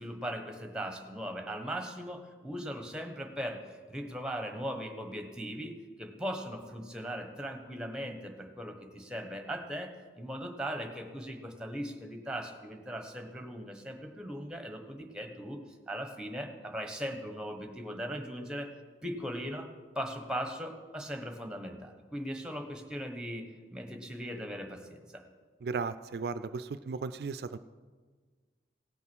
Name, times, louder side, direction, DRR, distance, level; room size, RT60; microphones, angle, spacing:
voice 1, 0.0-5.7 6.0-15.6 15.9-18.7 19.0-19.7 19.9-25.2, equal, 5° right, 5 dB, 1.0 m, -39 dB
voice 2, 25.6-27.6, right 4 dB, 65° right, 13 dB, 0.3 m, -35 dB
17.0 x 5.9 x 6.1 m, 1.5 s
head